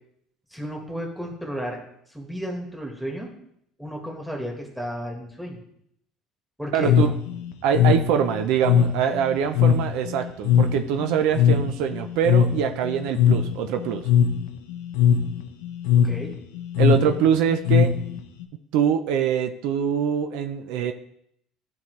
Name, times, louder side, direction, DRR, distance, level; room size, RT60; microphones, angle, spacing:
voice 1, 0.5-1.8 2.1-3.3 3.8-5.6 6.6-6.9 16.0-16.3, equal, ahead, 1 dB, 1.6 m, -33 dB
voice 2, 6.7-7.1 7.6-14.0 16.8-17.9 18.7-20.9, right 8 dB, 75° right, 7 dB, 0.4 m, -23 dB
sound 1, 6.8-18.4, left 8 dB, 90° left, 0.6 m, -21 dB
10.0 x 3.6 x 3.1 m, 0.72 s
supercardioid pair, 105°, 0 cm